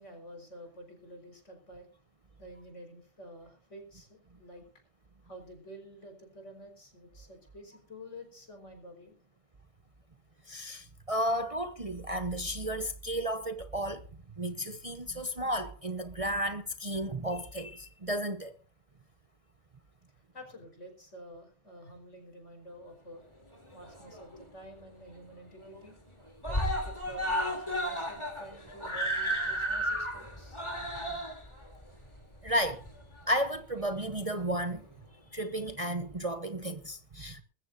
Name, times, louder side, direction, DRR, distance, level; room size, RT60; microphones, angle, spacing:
voice 1, 0.0-1.9 2.4-4.6 5.2-9.1 20.3-23.2 23.7-26.0 26.4-30.6, equal, 65° left, 5.1 m, -50 dB
voice 2, 10.5-14.1 14.4-18.5 32.4-32.8 33.3-34.8 35.3-37.4, right 1 dB, 30° right, 0.9 m, -33 dB
Screaming, 23.5-24.5 24.8-24.9 25.2-25.3 25.6-26.1 26.4-33.2 34.1-34.2, equal, 20° left, 3.4 m, -33 dB
21.0 x 14.5 x 2.7 m
omnidirectional pair, 1.3 m